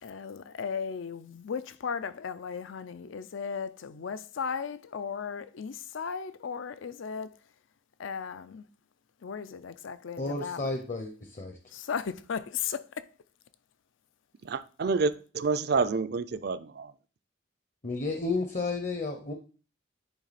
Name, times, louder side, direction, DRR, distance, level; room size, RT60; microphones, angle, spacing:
voice 1, 0.0-7.4 8.0-8.6 9.2-10.7 11.7-13.1, left 6 dB, 80° left, 0.5 m, -36 dB
voice 2, 10.2-11.6 17.8-19.3, left 3 dB, 40° left, 0.7 m, -32 dB
voice 3, 14.4-16.9, right 4 dB, 55° right, 0.4 m, -28 dB
10.5 x 3.5 x 4.1 m
head